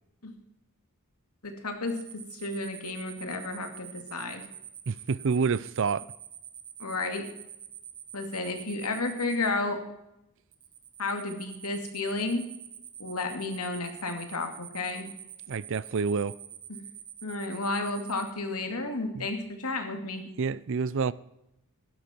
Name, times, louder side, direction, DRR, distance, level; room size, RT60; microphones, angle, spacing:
voice 1, 1.4-4.4 6.8-7.3 8.1-9.8 11.0-12.4 13.0-15.1 17.2-20.2, left 3 dB, 80° left, 2.5 m, -32 dB
sound 1, 1.9-9.5 10.5-18.3, right 10 dB, 40° right, 1.6 m, -45 dB
voice 2, 4.9-6.1 15.5-16.4 19.2-19.3 20.4-21.1, right 5 dB, 60° right, 0.5 m, -28 dB
16.0 x 12.0 x 4.5 m
head